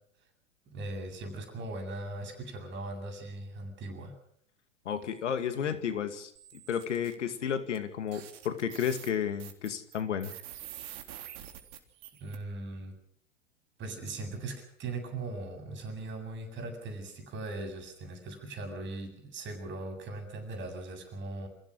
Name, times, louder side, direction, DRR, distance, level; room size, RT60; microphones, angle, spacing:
voice 1, 0.7-4.2 12.2-13.0 13.8-21.5, right 2 dB, 30° right, 5 dB, 7.9 m, -39 dB
voice 2, 4.9-6.3 6.7-10.3, left 8 dB, 75° left, 10 dB, 2.4 m, -32 dB
sound 1, 6.4-7.1 7.7-7.8 8.1-12.4, right 12 dB, 50° right, 3.6 m, -46 dB
27.5 x 16.5 x 6.4 m, 0.64 s
hypercardioid pair, 100°, 36 cm